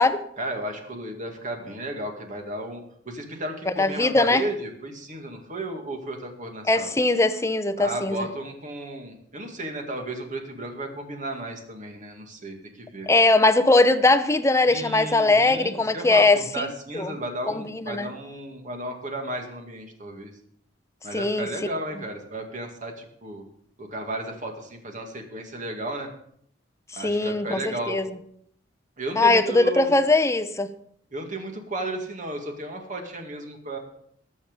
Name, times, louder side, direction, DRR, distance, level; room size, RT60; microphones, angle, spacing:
voice 1, 0.4-6.9 7.8-13.1 14.7-20.3 21.0-23.4 23.8-26.1 26.9-28.0 29.0-29.9 31.1-33.8, right 1 dB, 45° right, 3 dB, 2.2 m, -34 dB
voice 2, 3.7-4.4 6.7-8.3 13.1-16.6 16.9-17.1 17.5-18.1 21.1-21.5 27.0-28.1 29.2-30.7, left 2 dB, 15° left, 10 dB, 0.7 m, -20 dB
19.0 x 7.1 x 5.3 m, 0.69 s
head